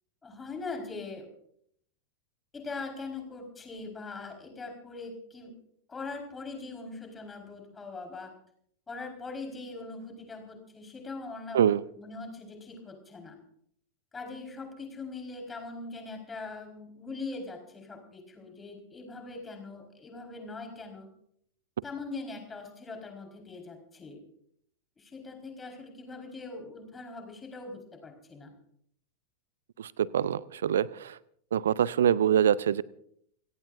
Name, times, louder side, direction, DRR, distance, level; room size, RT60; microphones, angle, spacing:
voice 1, 0.2-1.3 2.5-5.5 5.9-8.3 8.9-11.6 12.0-13.4 14.1-21.1 21.8-24.2 25.0-28.5, left 3 dB, 15° left, 3 dB, 4.7 m, -41 dB
voice 2, 29.8-31.2 31.5-32.8, right 9 dB, 65° right, 21 dB, 0.6 m, -25 dB
29.0 x 17.5 x 2.6 m, 0.67 s
figure-of-eight pair, 90°, 0 cm